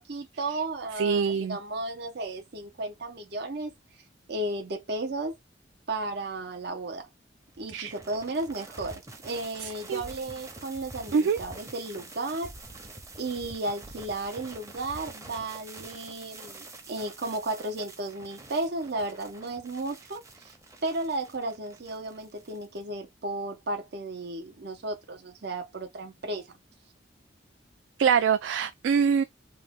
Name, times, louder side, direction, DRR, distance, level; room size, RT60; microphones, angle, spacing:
voice 1, 0.0-3.7 4.3-5.4 5.9-7.1 7.6-12.5 13.2-20.5 20.8-26.5, right 2 dB, 65° right, 0.8 m, -34 dB
voice 2, 1.0-1.6 7.7-7.9 9.6-10.0 11.1-11.4 28.0-29.2, right 6 dB, 80° right, 0.3 m, -24 dB
sound 1, 7.5-22.8, right 2 dB, 20° right, 0.7 m, -46 dB
3.0 x 2.2 x 3.5 m
head